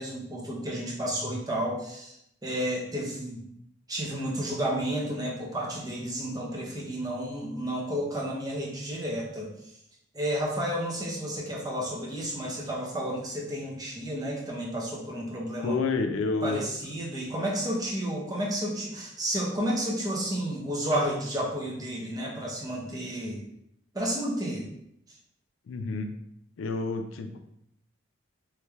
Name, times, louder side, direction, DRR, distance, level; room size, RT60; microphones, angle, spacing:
voice 1, 0.0-2.2 2.4-3.5 3.9-9.7 10.1-15.8 16.4-23.4 23.9-24.7, right 1 dB, 20° right, -3 dB, 0.6 m, -31 dB
voice 2, 15.6-16.7 25.7-26.1 26.6-27.4, left 4 dB, 80° left, 7 dB, 0.4 m, -29 dB
3.2 x 3.1 x 2.3 m, 0.75 s
head